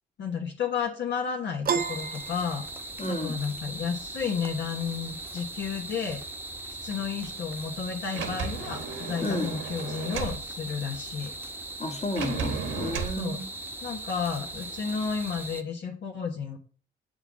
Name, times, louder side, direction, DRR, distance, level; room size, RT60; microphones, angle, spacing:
voice 1, 0.2-2.6 3.1-6.2 6.8-11.3 13.2-13.4 13.8-16.6, left 6 dB, 65° left, 1.4 m, -32 dB
Piano, 1.6-3.2, right 7 dB, 50° right, 0.7 m, -31 dB
sound 1, 1.8-15.6, right 2 dB, 10° right, 1.0 m, -39 dB
voice 2, 3.0-3.4 9.2-9.5 11.8-13.4, left 1 dB, 35° left, 1.9 m, -31 dB
Sliding door, 8.1-10.4 12.2-13.2, right 6 dB, 85° right, 1.2 m, -34 dB
7.8 x 3.9 x 6.3 m
cardioid pair, 90°, 20 cm